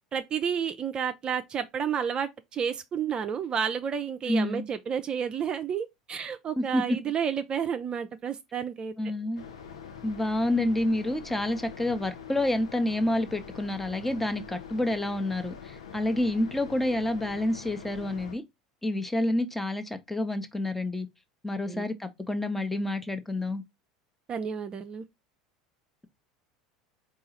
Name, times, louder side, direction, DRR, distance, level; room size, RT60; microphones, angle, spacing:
voice 1, 0.1-8.9 21.7-21.9 24.3-25.0, right 7 dB, 30° right, 0.4 m, -31 dB
voice 2, 4.3-4.6 6.6-7.0 9.0-9.4 10.0-18.4 18.8-21.1 21.4-23.6, left 1 dB, 5° left, 0.7 m, -28 dB
sound 1, 9.4-18.4, left 6 dB, 75° left, 0.7 m, -44 dB
4.6 x 2.4 x 4.1 m
figure-of-eight pair, 75°, 3 cm